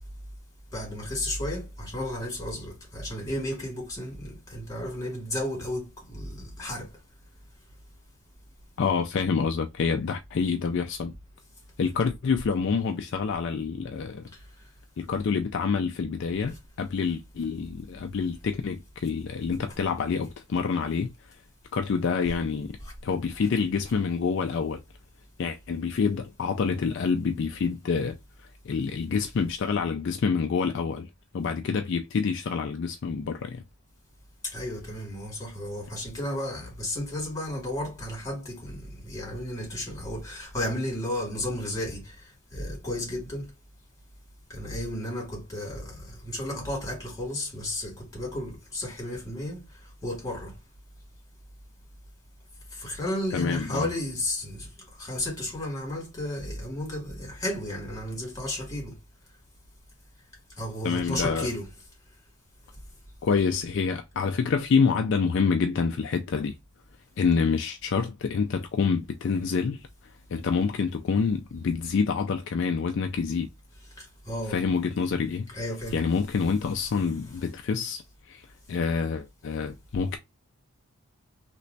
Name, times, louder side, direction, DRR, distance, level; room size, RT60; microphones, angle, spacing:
voice 1, 0.7-6.9 14.3-14.4 22.8-22.9 34.4-43.5 44.5-49.6 50.0-50.5 52.7-59.0 60.6-61.7 74.0-74.6 75.5-76.0, left 1 dB, 15° left, 2.0 m, -33 dB
voice 2, 8.8-11.1 11.8-14.2 15.0-21.1 21.7-22.8 23.0-24.8 25.4-28.2 28.6-31.1 31.3-33.6 53.3-53.9 60.8-61.5 63.2-66.6 67.2-69.9 70.3-73.5 74.5-75.5 75.9-80.2, left 5 dB, 55° left, 0.3 m, -27 dB
3.2 x 2.9 x 2.6 m
head